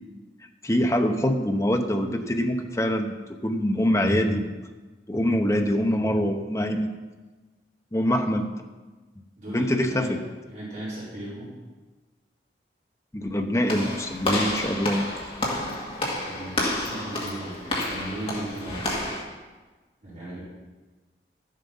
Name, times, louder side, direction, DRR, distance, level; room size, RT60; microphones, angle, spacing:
voice 1, 0.6-3.2 3.4-4.5 5.1-6.9 7.9-8.4 9.5-10.2 13.1-15.0, equal, 15° left, 4 dB, 0.8 m, -24 dB
voice 2, 9.4-10.1 10.5-11.5 16.2-18.9 20.0-20.4, right 1 dB, 45° right, -9 dB, 4.0 m, -36 dB
Walk footsteps / Slam, 13.7-19.2, left 1 dB, 35° left, 2.0 m, -30 dB
12.0 x 7.5 x 5.5 m, 1.3 s
head